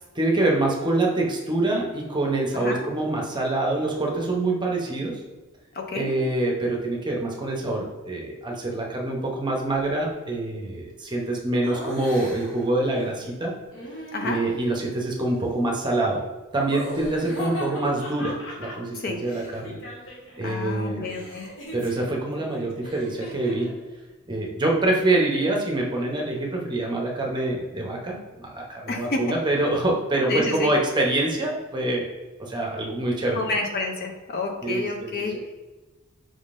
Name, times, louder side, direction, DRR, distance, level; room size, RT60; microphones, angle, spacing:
voice 1, 0.1-5.2 5.9-13.5 14.2-16.2 16.5-19.8 20.4-21.1 21.7-23.7 24.3-32.1 32.4-33.4 34.6-35.4, right 2 dB, 20° right, -1 dB, 0.7 m, -25 dB
voice 2, 2.5-2.9 5.7-6.1 14.1-14.4 19.0-19.2 20.4-21.5 28.9-29.2 30.3-30.7 33.3-35.5, left 3 dB, 45° left, 2 dB, 0.5 m, -29 dB
Laughter, 11.6-12.7 13.7-14.7 16.5-20.4 20.7-23.8, equal, 65° left, 1.2 m, -38 dB
5.0 x 3.6 x 2.5 m, 1.2 s
head